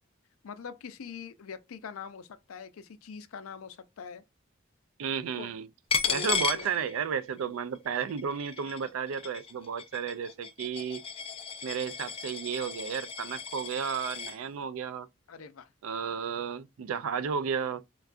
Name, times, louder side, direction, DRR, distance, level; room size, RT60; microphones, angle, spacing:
voice 1, 0.4-4.2 5.3-5.5 6.1-6.7 15.3-15.7, left 6 dB, 90° left, 0.5 m, -43 dB
voice 2, 5.0-5.7 6.1-11.0 11.6-15.1 15.8-17.8, right 7 dB, 80° right, 0.4 m, -33 dB
Coin (dropping), 5.9-7.4 7.8-14.4, left 6 dB, 25° left, 0.4 m, -35 dB
4.5 x 2.3 x 2.4 m
head